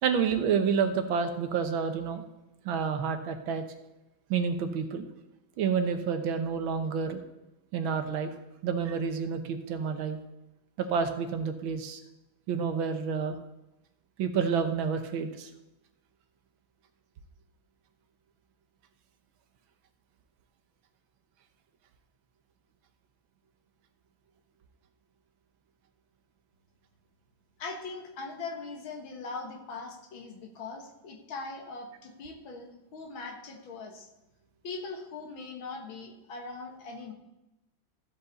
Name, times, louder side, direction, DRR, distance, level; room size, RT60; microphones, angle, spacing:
voice 1, 0.0-2.2 2.7-3.6 4.3-5.1 5.6-7.2 7.7-8.3 8.6-10.2 10.8-12.0 12.5-13.4 14.2-15.5, right 6 dB, 75° right, 7 dB, 1.7 m, -29 dB
voice 2, 27.6-34.1 34.6-37.1, left 3 dB, 80° left, 3 dB, 2.2 m, -41 dB
14.0 x 8.0 x 4.1 m, 0.95 s
omnidirectional pair, 2.2 m